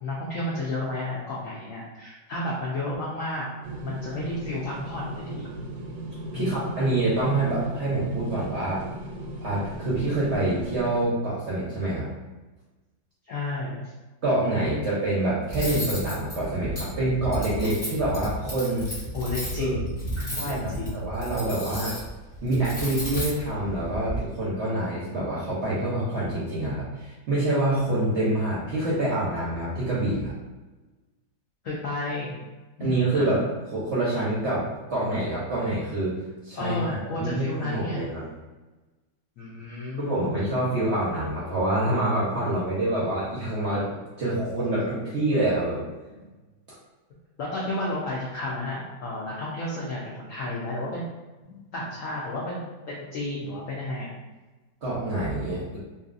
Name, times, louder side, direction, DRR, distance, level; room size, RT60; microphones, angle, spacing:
voice 1, 0.0-3.5 3.8-5.5 6.3-6.6 13.3-13.9 19.1-19.9 20.2-21.0 31.6-32.4 32.8-33.2 36.6-38.0 39.4-40.3 46.2-46.3 47.4-51.0 51.7-54.1, left 2 dB, 75° left, -5 dB, 0.7 m, -32 dB
sound 1, 3.6-11.1, right 1 dB, 80° right, 1.3 m, -36 dB
voice 2, 6.3-8.9 9.4-12.1 14.2-18.9 19.6-19.8 20.3-21.9 22.4-30.3 32.8-33.4 33.7-36.1 36.4-38.2 40.0-43.9 44.2-45.8 51.5-51.6 54.8-55.8, right 1 dB, 60° right, -8 dB, 0.7 m, -26 dB
Cutlery silverware, 15.5-24.2, right 1 dB, 20° left, 1.1 m, -33 dB
3.0 x 2.7 x 2.5 m, 1.2 s
omnidirectional pair, 2.0 m